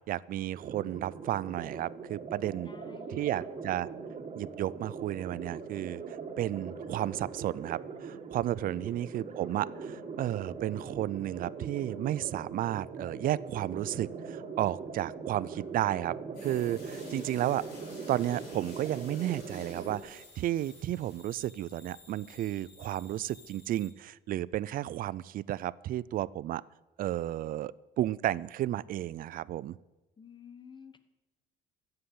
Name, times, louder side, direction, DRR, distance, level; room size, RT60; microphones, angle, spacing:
voice 1, 0.1-2.7 3.1-3.9 4.3-6.0 6.4-16.1 16.4-17.6 18.1-26.6 27.0-29.8, right 13 dB, 55° right, 21 dB, 0.4 m, -33 dB
sound 1, 0.5-20.0, right 5 dB, 40° right, 2.0 m, -41 dB
voice 2, 2.6-3.5 8.7-9.3 17.0-17.4 17.7-17.9 30.2-31.0, left 6 dB, 25° left, 11 dB, 1.2 m, -51 dB
sound 2, 16.3-23.9, left 3 dB, 75° left, 4.9 m, -54 dB
13.5 x 7.7 x 8.5 m, 1.1 s
cardioid pair, 110°, 17 cm